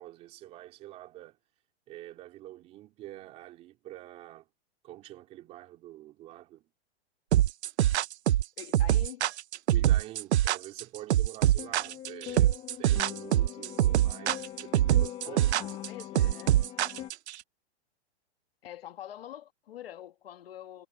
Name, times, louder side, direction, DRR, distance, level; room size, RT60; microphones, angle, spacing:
voice 1, 0.0-1.4 1.9-4.5 4.8-6.7 9.7-16.4, right 14 dB, 20° right, 4.0 m, -47 dB
sound 1, 7.3-17.4, right 13 dB, 75° right, 0.6 m, -24 dB
voice 2, 8.6-9.3 15.3-16.6 18.6-20.9, left 11 dB, 60° left, 1.8 m, -45 dB
sound 2, 11.6-17.1, left 12 dB, 15° left, 1.7 m, -42 dB
supercardioid pair, 180°, 34 cm